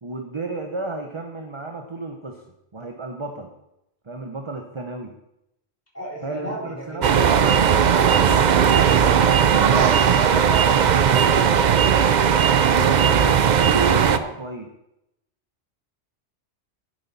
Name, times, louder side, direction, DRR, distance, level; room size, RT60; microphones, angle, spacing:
voice 1, 0.0-2.4 2.7-3.5 4.1-5.1 6.2-7.7 9.7-11.9 12.7-14.7, right 3 dB, 25° right, 3 dB, 0.9 m, -31 dB
voice 2, 5.9-8.7, right 1 dB, 10° left, -6 dB, 4.1 m, -36 dB
sound 1, 7.0-14.2, right 7 dB, 50° right, 0.5 m, -17 dB
10.5 x 10.0 x 4.2 m, 0.84 s
omnidirectional pair, 1.2 m